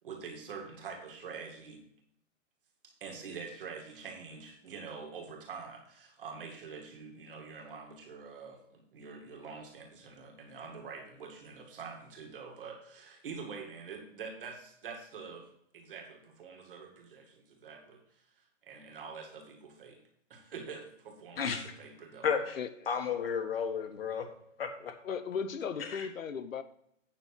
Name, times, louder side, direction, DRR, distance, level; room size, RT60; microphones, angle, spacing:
voice 1, 0.0-1.8 2.8-15.5 15.7-20.0 20.3-21.5 21.8-22.3, right 5 dB, 45° right, 2.3 m, -46 dB
voice 2, 21.4-21.7 22.2-22.6 22.9-24.3 24.6-24.9 25.9-26.1, left 6 dB, 45° left, 1.5 m, -32 dB
voice 3, 24.8-26.6, left 6 dB, 85° left, 1.1 m, -36 dB
8.9 x 6.9 x 4.6 m
hypercardioid pair, 175°, 38 cm